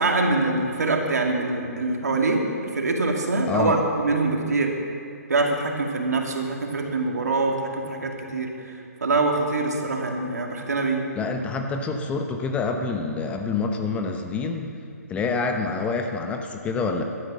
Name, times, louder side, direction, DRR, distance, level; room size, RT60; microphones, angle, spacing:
voice 1, 0.0-2.4 2.7-4.7 5.3-11.0, right 3 dB, 75° right, 1 dB, 2.3 m, -24 dB
voice 2, 3.5-3.8 11.2-14.7 15.1-17.0, left 4 dB, 15° left, 4 dB, 0.8 m, -27 dB
14.0 x 12.0 x 6.2 m, 2.5 s
figure-of-eight pair, 135°, 9 cm